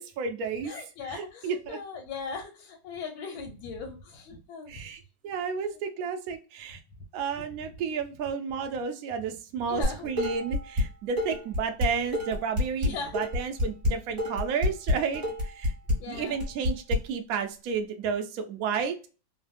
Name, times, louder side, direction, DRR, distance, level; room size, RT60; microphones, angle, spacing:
voice 1, 0.0-0.7 1.0-1.8 4.7-6.8 7.1-15.7 16.1-18.9, right 6 dB, 80° right, 5 dB, 0.8 m, -32 dB
voice 2, 0.6-4.8 7.4-7.5 9.6-10.1 12.8-13.1 16.0-16.4, left 5 dB, 90° left, 1 dB, 1.4 m, -39 dB
Dishes pots and pans, 9.8-10.9 11.2-17.0, left 2 dB, 35° right, 1.1 m, -27 dB
3.2 x 2.1 x 2.5 m, 0.33 s
omnidirectional pair, 2.1 m